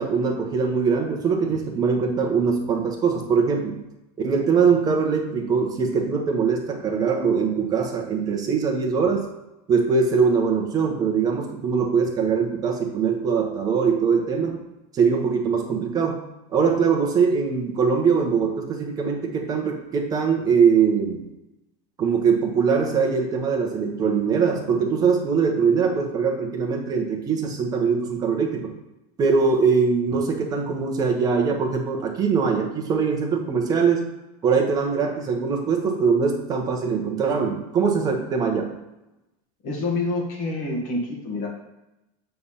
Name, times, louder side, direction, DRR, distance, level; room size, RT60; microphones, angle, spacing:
voice 1, 0.0-3.8 4.2-9.3 9.7-14.6 14.9-16.2 16.5-21.3 22.0-28.7 29.2-34.1 34.4-38.7, right 5 dB, 20° right, 2 dB, 0.9 m, -22 dB
voice 2, 39.6-41.5, left 2 dB, 40° left, -2 dB, 1.8 m, -27 dB
6.8 x 3.4 x 5.6 m, 0.94 s
supercardioid pair, 165°, 19 cm